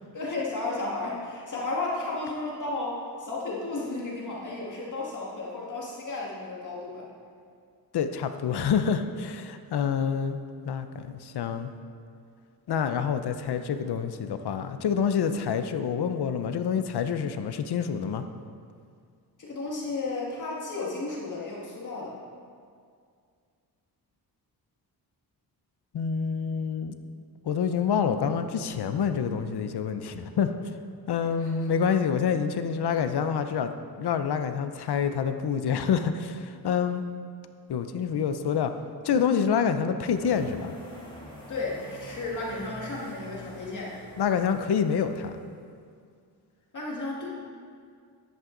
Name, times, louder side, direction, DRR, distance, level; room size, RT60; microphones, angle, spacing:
voice 1, 0.1-7.1 19.4-22.2 31.4-31.7 41.5-44.0 46.7-47.3, left 2 dB, 50° left, -4 dB, 2.0 m, -33 dB
voice 2, 7.9-10.4 10.6-11.7 12.7-18.2 25.9-27.0 27.4-30.5 31.1-37.0 37.7-38.7 39.0-40.7 44.2-45.3, left 7 dB, 75° left, 9 dB, 0.8 m, -27 dB
sound 1, 40.1-45.7, left 1 dB, 15° left, 2.5 m, -46 dB
13.5 x 11.0 x 3.9 m, 2.2 s
wide cardioid pair, 160°, 39 cm